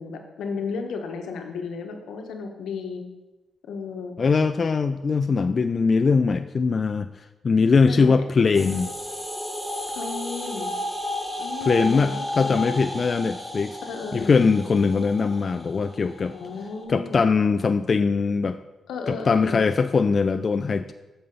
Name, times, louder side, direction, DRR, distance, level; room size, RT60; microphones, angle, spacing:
voice 1, 0.0-3.0 3.7-4.2 7.9-8.2 9.9-10.7 11.4-13.0 13.8-14.5 16.3-17.2 18.9-19.6, left 5 dB, 90° left, 4 dB, 1.1 m, -34 dB
voice 2, 4.2-7.1 7.4-8.9 11.7-13.8 14.1-16.3 16.9-18.6 19.1-20.9, left 4 dB, 45° left, 10 dB, 0.3 m, -21 dB
sound 1, 8.6-16.9, left 1 dB, 5° right, 1.6 m, -33 dB
8.5 x 5.5 x 5.3 m, 1.1 s
cardioid pair, 80°, 0 cm